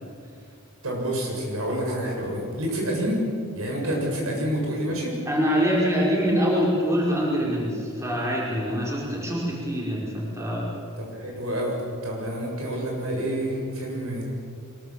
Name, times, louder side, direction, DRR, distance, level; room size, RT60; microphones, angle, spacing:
voice 1, 0.8-3.3 3.5-5.1 11.0-11.7 12.0-14.3, equal, 85° right, -1 dB, 7.4 m, -28 dB
voice 2, 5.3-10.7, equal, 15° right, -4 dB, 5.3 m, -24 dB
24.5 x 22.5 x 7.4 m, 2.4 s
head